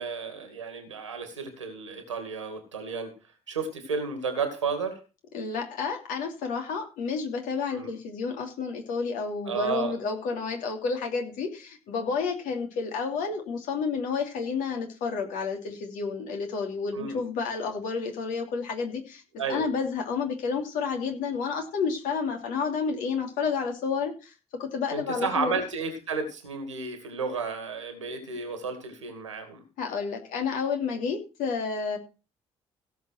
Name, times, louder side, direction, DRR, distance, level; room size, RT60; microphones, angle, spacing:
voice 1, 0.0-3.1 3.5-5.0 7.7-7.9 9.5-9.9 16.9-17.2 19.4-19.7 24.9-29.6, right 5 dB, 85° right, 7 dB, 2.3 m, -32 dB
voice 2, 5.3-19.2 19.5-24.3 24.6-25.6 29.8-32.0, left 5 dB, 60° left, 3 dB, 2.9 m, -30 dB
17.0 x 6.7 x 4.5 m, 0.32 s
figure-of-eight pair, 45°, 15 cm